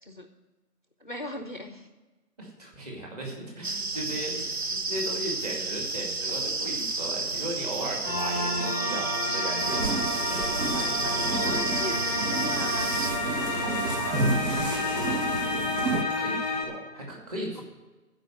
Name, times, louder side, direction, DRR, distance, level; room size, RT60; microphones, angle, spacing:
voice 1, 1.0-1.9 11.4-14.4, equal, 35° left, 6 dB, 0.5 m, -39 dB
voice 2, 2.4-11.7 16.1-17.6, right 1 dB, 25° right, 0 dB, 2.3 m, -37 dB
sound 1, 3.6-13.1, right 3 dB, 45° right, 0.8 m, -31 dB
sound 2, 8.0-16.6, left 2 dB, 5° right, 1.3 m, -30 dB
sound 3, 9.6-16.0, right 2 dB, 80° right, 1.8 m, -31 dB
13.0 x 5.0 x 9.0 m, 1.2 s
figure-of-eight pair, 160°, 47 cm